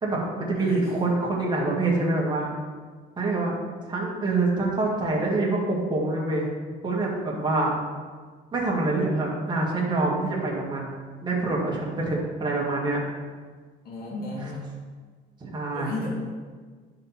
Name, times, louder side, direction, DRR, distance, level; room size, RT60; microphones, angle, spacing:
voice 1, 0.0-2.5 3.2-3.6 3.9-6.5 6.8-7.7 8.5-13.0 15.4-15.9, right 2 dB, 25° right, -4 dB, 2.2 m, -26 dB
voice 2, 13.8-14.8 15.7-16.1, left 2 dB, 60° left, -3 dB, 2.4 m, -34 dB
10.5 x 5.3 x 4.4 m, 1.5 s
cardioid pair, 110°, 17 cm